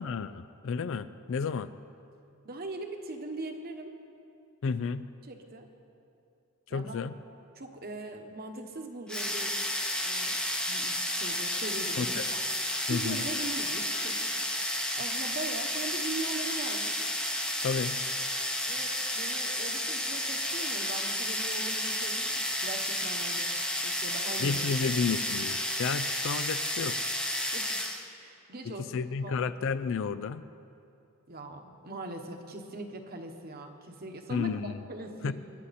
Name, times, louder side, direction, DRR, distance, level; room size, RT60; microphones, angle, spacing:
voice 1, 0.0-1.7 4.6-5.1 6.7-7.1 12.0-12.2 12.9-13.2 17.6-18.0 24.4-27.0 28.7-30.4 34.3-34.8 35.2-35.3, left 5 dB, 60° left, 13 dB, 0.4 m, -32 dB
voice 2, 2.4-3.9 5.2-5.7 6.7-7.0 7.5-9.6 10.0-10.4 10.7-12.4 12.9-14.6 15.0-17.1 18.6-23.5 23.8-24.6 25.1-25.2 27.5-27.8 28.2-29.5 31.3-35.3, right 2 dB, 45° right, 4 dB, 1.2 m, -41 dB
sound 1, 9.1-28.1, left 1 dB, 5° left, 0.8 m, -31 dB
22.0 x 9.9 x 4.2 m, 2.6 s
head